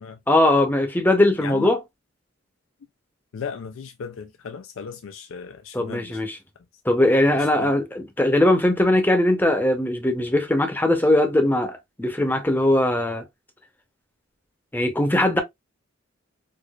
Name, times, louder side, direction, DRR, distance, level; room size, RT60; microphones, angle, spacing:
voice 1, 0.3-1.8 5.7-6.4 6.8-13.2 14.7-15.4, left 1 dB, 10° left, 0.7 m, -20 dB
voice 2, 1.4-1.7 3.3-6.2 7.4-7.7, left 6 dB, 70° left, 0.4 m, -36 dB
4.6 x 2.4 x 2.3 m
head